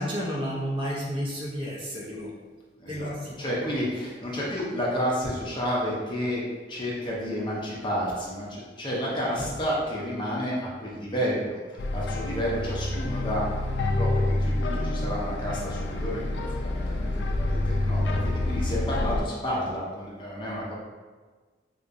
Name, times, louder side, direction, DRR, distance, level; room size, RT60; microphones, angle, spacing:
voice 1, 0.0-2.3 2.9-3.6, equal, 30° right, -4 dB, 0.5 m, -31 dB
voice 2, 2.8-6.4 6.7-13.5 14.0-20.8, equal, 25° left, -5 dB, 0.7 m, -31 dB
sound 1, 11.8-19.2, left 2 dB, 65° left, 0.3 m, -27 dB
3.6 x 2.8 x 2.5 m, 1.4 s
head